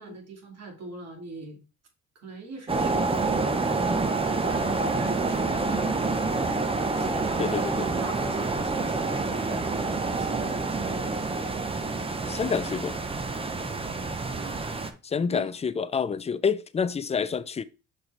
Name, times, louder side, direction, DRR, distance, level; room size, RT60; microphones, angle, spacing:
voice 1, 0.0-1.6 2.2-4.0 4.3-6.3 6.7-11.2 13.7-14.8 15.3-15.5, right 3 dB, 55° right, 2.3 m, -42 dB
sound 1, 2.7-14.9, right 3 dB, 20° right, 0.8 m, -27 dB
voice 2, 7.4-7.9 12.3-13.0 15.0-17.6, left 6 dB, 20° left, 0.4 m, -28 dB
6.2 x 4.6 x 3.3 m
cardioid pair, 90°, 30 cm